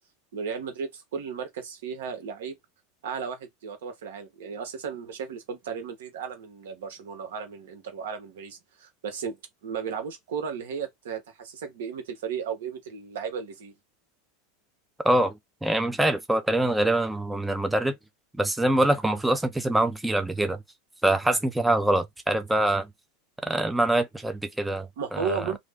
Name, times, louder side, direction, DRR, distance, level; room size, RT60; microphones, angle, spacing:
voice 1, 0.3-2.6 3.0-9.4 9.6-13.7 25.0-25.6, right 6 dB, 85° right, 1.0 m, -35 dB
voice 2, 15.6-18.0 18.4-20.6 21.0-22.9 23.4-25.4, right 1 dB, 5° right, 0.4 m, -24 dB
2.5 x 2.1 x 3.4 m
supercardioid pair, 130°, 0 cm